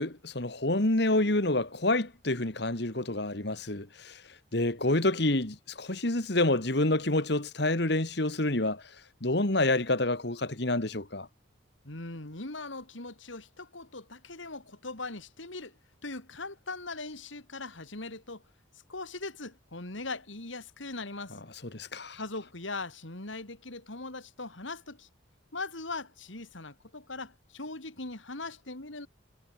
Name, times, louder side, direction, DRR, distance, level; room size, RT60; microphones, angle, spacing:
voice 1, 0.0-4.2 4.5-8.8 9.2-11.3 21.7-22.2, left 2 dB, 55° left, 2.0 m, -28 dB
voice 2, 11.8-15.7 16.0-18.4 18.9-21.4 22.1-25.1 25.5-29.1, left 3 dB, 75° left, 3.3 m, -40 dB
head